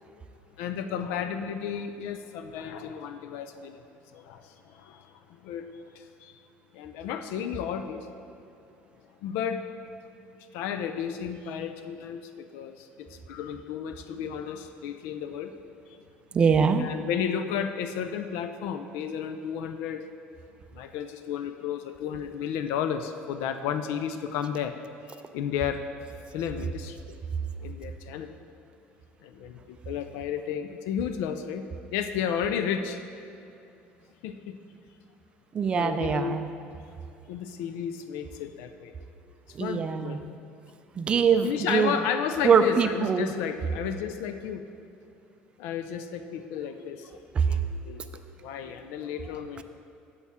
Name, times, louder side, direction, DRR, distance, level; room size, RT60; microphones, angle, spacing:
voice 1, 0.6-3.8 4.1-4.4 4.9-5.0 5.4-5.7 6.2-6.3 6.7-8.1 9.2-9.6 10.5-12.7 13.3-15.5 16.8-20.1 20.8-24.7 25.3-25.8 26.3-27.0 27.6-28.3 29.2-31.6 31.9-33.0 34.2-34.5 35.7-36.4 37.3-38.9 39.6-40.2 41.4-44.6 45.6-47.0 47.5-48.0 48.4-49.6, left 8 dB, 85° left, 8 dB, 0.4 m, -32 dB
voice 2, 16.3-16.9 35.5-36.5 39.5-40.2 41.0-42.0 42.4-43.3 46.8-46.9 47.3-48.3 49.6-49.7, right 6 dB, 25° right, 9 dB, 0.3 m, -24 dB
8.5 x 7.1 x 3.6 m, 2.8 s
cardioid pair, 150°, 4 cm